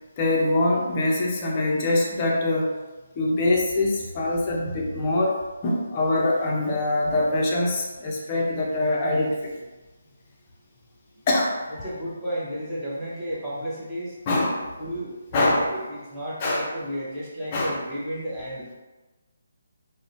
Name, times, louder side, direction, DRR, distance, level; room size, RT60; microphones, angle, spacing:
voice 1, 0.2-2.7 3.2-9.6 11.3-11.9 14.3-14.7 15.3-15.8 16.4-16.7 17.5-17.8, left 2 dB, 30° left, -2 dB, 0.5 m, -24 dB
voice 2, 11.8-14.1 14.8-18.7, equal, 5° right, -12 dB, 0.8 m, -33 dB
2.7 x 2.0 x 2.6 m, 1.2 s
figure-of-eight pair, 155°, 0 cm